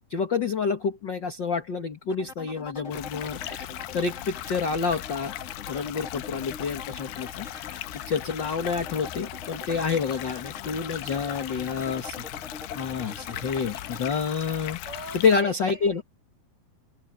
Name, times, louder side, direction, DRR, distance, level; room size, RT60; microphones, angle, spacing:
voice 1, 0.1-3.7 3.9-5.3 5.7-12.2 12.7-14.8 15.1-16.0, left 5 dB, 50° left, 1.4 m, -28 dB
sound 1, 2.1-14.1, left 4 dB, 30° left, 1.5 m, -43 dB
sound 2, 2.9-15.4, left 13 dB, 85° left, 2.9 m, -38 dB
voice 2, 14.8-16.0, right 2 dB, 20° right, 5.0 m, -41 dB
omnidirectional pair, 4.6 m